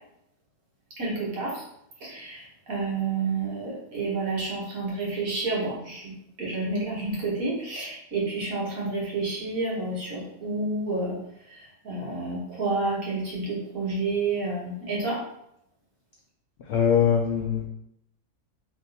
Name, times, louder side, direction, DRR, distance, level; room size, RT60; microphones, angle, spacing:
voice 1, 1.0-1.6 2.0-11.2 11.5-15.2, right 3 dB, 60° right, -5 dB, 1.7 m, -30 dB
voice 2, 16.7-17.7, left 8 dB, 75° left, 0 dB, 0.6 m, -22 dB
3.6 x 2.7 x 4.0 m, 0.76 s
omnidirectional pair, 1.7 m